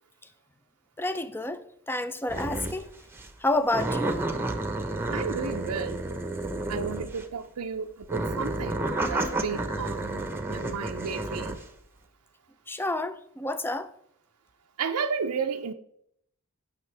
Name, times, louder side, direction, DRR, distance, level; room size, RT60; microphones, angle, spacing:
voice 1, 1.0-2.9 3.4-4.3 12.7-13.9, left 2 dB, 10° left, 0.5 m, -29 dB
sound 1, 2.3-2.8 3.1-3.3 3.7-7.4 8.0-11.6, right 2 dB, 10° right, 1.0 m, -31 dB
voice 2, 5.1-6.0 6.7-11.6 14.8-15.7, right 5 dB, 90° right, 0.6 m, -33 dB
16.0 x 6.2 x 3.4 m
head